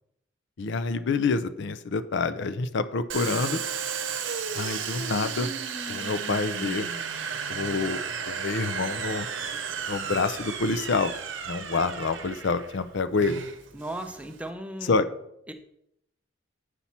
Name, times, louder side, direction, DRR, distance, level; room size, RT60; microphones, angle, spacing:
voice 1, 0.6-3.6 4.5-5.5 5.9-6.9 7.5-8.0 8.3-9.3 9.9-11.1 11.5-13.4 14.8-15.1, left 4 dB, 60° left, 13 dB, 0.5 m, -27 dB
Domestic sounds home sounds, 3.1-14.5, right 6 dB, 65° right, 0.8 m, -34 dB
voice 2, 13.7-15.1 15.5-15.6, right 1 dB, 5° right, 6 dB, 0.6 m, -36 dB
8.3 x 5.8 x 4.3 m, 0.77 s
head